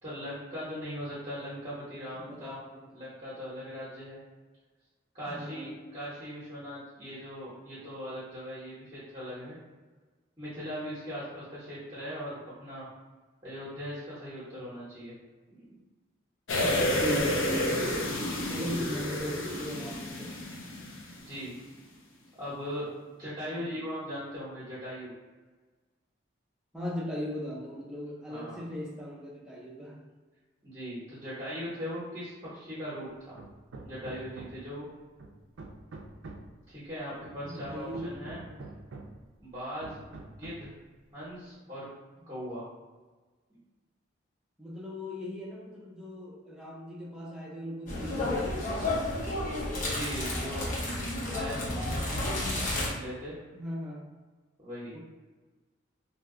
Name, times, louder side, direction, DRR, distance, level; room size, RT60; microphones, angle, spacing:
voice 1, 0.0-2.6 2.9-4.2 5.1-9.6 10.4-12.9 13.4-15.1 15.5-15.8 18.7-18.9 21.2-21.5 22.4-25.1 28.3-28.6 30.6-33.4 33.8-34.9 36.7-38.4 39.4-40.0 40.3-40.7 41.1-41.9 42.3-42.6 43.5-43.6 49.9-50.7 51.1-52.2 52.6-53.3 54.6-54.9, equal, 25° right, -11 dB, 0.9 m, -39 dB
voice 2, 2.1-2.8 5.3-5.8 17.0-18.0 18.5-20.5 23.5-23.6 26.7-30.0 37.4-38.1 38.4-38.6 44.6-48.7 53.5-54.1 54.9-55.0, equal, 5° right, -5 dB, 0.6 m, -38 dB
sound 1, 16.5-21.3 21.6-21.7, left 1 dB, 80° left, 0.6 m, -30 dB
Hammer, 33.4-34.8 35.2-36.6 37.2-39.3 39.8-40.8, right 2 dB, 75° right, 0.4 m, -46 dB
sound 2, 47.9-52.9, left 1 dB, 40° left, 0.8 m, -31 dB
2.8 x 2.2 x 3.6 m, 1.3 s
head